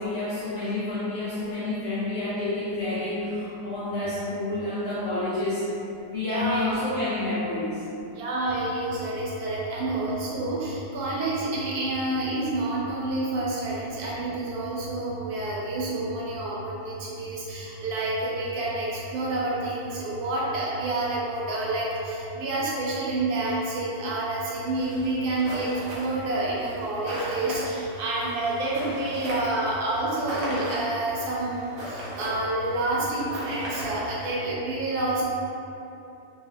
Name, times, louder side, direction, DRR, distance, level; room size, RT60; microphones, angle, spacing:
voice 1, 0.0-5.7 6.1-7.8, left 2 dB, 80° left, -10 dB, 0.5 m, -29 dB
voice 2, 6.3-6.8 8.2-35.2, right 2 dB, 85° right, -6 dB, 1.2 m, -28 dB
sound 1, 24.8-34.3, equal, 60° right, 0.8 m, -37 dB
2.7 x 2.3 x 2.8 m, 2.8 s
omnidirectional pair, 1.6 m